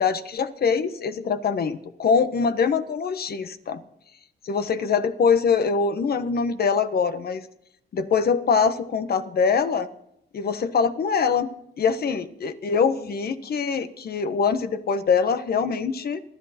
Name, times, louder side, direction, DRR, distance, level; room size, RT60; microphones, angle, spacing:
voice 1, 0.0-3.8 4.4-7.5 7.9-9.9 10.3-11.5 11.8-16.2, left 5 dB, 50° left, 10 dB, 1.3 m, -23 dB
26.5 x 11.0 x 4.4 m, 0.78 s
cardioid pair, 90°, 20 cm